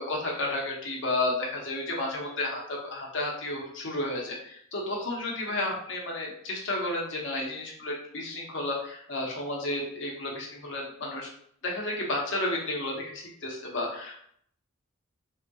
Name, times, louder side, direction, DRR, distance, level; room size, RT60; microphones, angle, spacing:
voice 1, 0.0-11.3 11.6-14.2, left 2 dB, 60° left, -2 dB, 0.8 m, -32 dB
3.4 x 2.7 x 2.2 m, 0.65 s
head